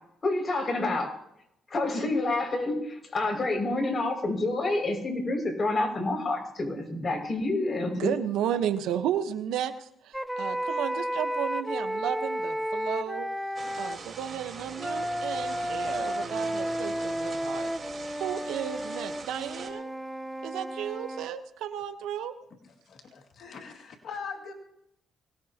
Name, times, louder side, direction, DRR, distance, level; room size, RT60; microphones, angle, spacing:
voice 1, 0.2-1.1 1.7-8.2, left 2 dB, 35° left, 3 dB, 6.2 m, -28 dB
voice 2, 8.0-13.3 13.8-17.7 18.2-19.9 20.4-22.3, right 10 dB, 90° right, 8 dB, 1.2 m, -33 dB
sound 1, 10.1-14.0 14.8-21.3, equal, 5° right, 0.7 m, -32 dB
sound 2, 13.5-19.7, right 4 dB, 40° right, 4.1 m, -42 dB
voice 3, 22.6-24.5, left 5 dB, 60° left, 2 dB, 2.3 m, -41 dB
23.5 x 18.0 x 3.0 m, 0.78 s
cardioid pair, 90°, 0 cm